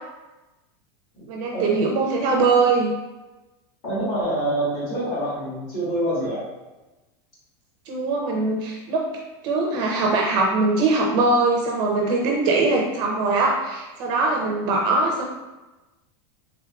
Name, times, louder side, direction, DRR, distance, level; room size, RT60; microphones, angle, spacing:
voice 1, 1.3-2.9 7.9-9.1 9.4-15.2, right 3 dB, 30° right, 0 dB, 0.4 m, -21 dB
voice 2, 3.8-6.4, right 1 dB, 35° left, -7 dB, 1.4 m, -26 dB
3.5 x 3.4 x 2.3 m, 1.1 s
supercardioid pair, 170°, 14 cm